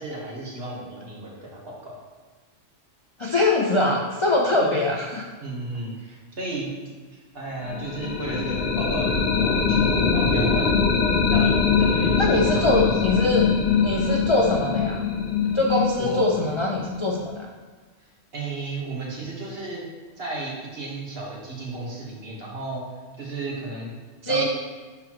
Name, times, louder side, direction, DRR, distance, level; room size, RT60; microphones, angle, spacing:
voice 1, 0.0-2.0 3.8-4.0 4.5-4.9 5.4-6.7 7.1-10.7 11.3-12.9 16.0-16.3 18.3-19.9 20.2-22.8 23.2-23.9 24.3-24.4, right 2 dB, 55° right, -3 dB, 1.6 m, -33 dB
voice 2, 3.2-5.2 12.2-13.5 13.8-15.0 15.5-17.5 24.2-24.4, left 2 dB, 40° left, -1 dB, 0.4 m, -22 dB
sound 1, 7.7-17.4, left 5 dB, 65° left, 1.0 m, -23 dB
10.0 x 4.2 x 3.0 m, 1.4 s
omnidirectional pair, 1.3 m